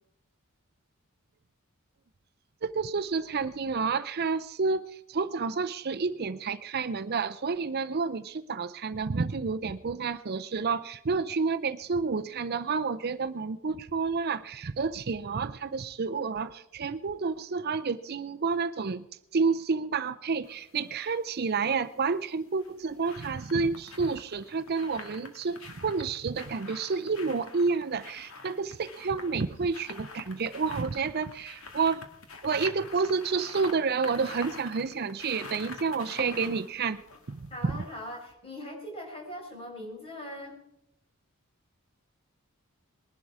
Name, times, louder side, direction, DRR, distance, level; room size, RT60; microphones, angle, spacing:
voice 1, 2.6-19.0 19.3-32.0 32.4-37.0 37.3-37.8, right 4 dB, 45° right, 11 dB, 0.5 m, -30 dB
sound 1, 20.4-21.2 22.4-37.9 38.3-38.4, left 3 dB, 70° left, 2.1 m, -46 dB
voice 2, 37.5-40.5, left 1 dB, 25° left, 0 dB, 5.5 m, -40 dB
21.0 x 11.5 x 4.9 m, 0.77 s
head